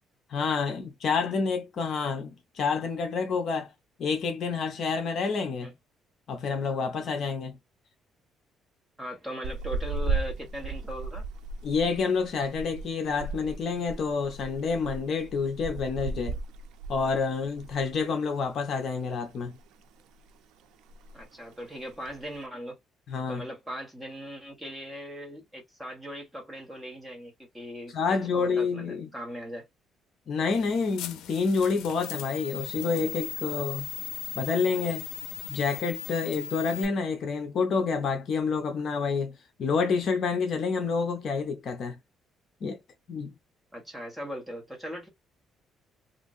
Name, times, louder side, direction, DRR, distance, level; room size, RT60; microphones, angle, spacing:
voice 1, 0.3-3.7 4.0-5.7 6.3-7.6 11.6-16.4 16.9-19.5 23.1-23.4 27.9-29.1 30.3-33.9 34.3-35.1 35.5-42.0 42.6-42.8 43.1-43.3, left 5 dB, 45° left, 0.7 m, -28 dB
voice 2, 9.0-11.2 21.1-22.8 23.3-27.9 28.3-29.7 43.7-45.1, equal, 5° right, 1.2 m, -39 dB
sound 1, 9.4-18.0 18.2-18.4 18.8-19.7 20.0-20.4 20.6-20.7 20.9-21.4 21.9-22.4, right 3 dB, 85° right, 0.4 m, -35 dB
sound 2, 30.5-36.8, left 9 dB, 85° left, 0.4 m, -38 dB
2.9 x 2.5 x 2.5 m
cardioid pair, 165°, 0 cm